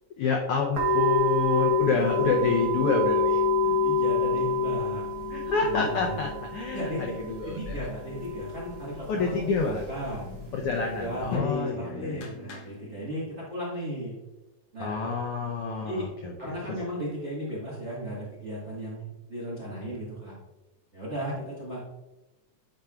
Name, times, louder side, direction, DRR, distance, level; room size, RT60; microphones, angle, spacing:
voice 1, 0.2-3.4 5.3-6.9 7.3-7.9 9.1-9.8 10.5-12.2 14.8-16.8, left 4 dB, 85° left, 1 dB, 1.2 m, -28 dB
sound 1, 0.7-11.4, left 2 dB, 75° right, 1.0 m, -28 dB
sound 2, 1.9-8.3, right 10 dB, 30° left, 1.9 m, -44 dB
voice 2, 3.6-5.0 5.6-6.3 6.7-10.2 10.9-14.2 14.7-15.1 15.8-16.1 16.4-20.4 20.9-21.8, equal, 40° right, -7 dB, 1.0 m, -35 dB
sound 3, 10.2-13.2, left 4 dB, 65° left, 1.6 m, -38 dB
10.0 x 4.4 x 2.3 m, 1.0 s
omnidirectional pair, 3.4 m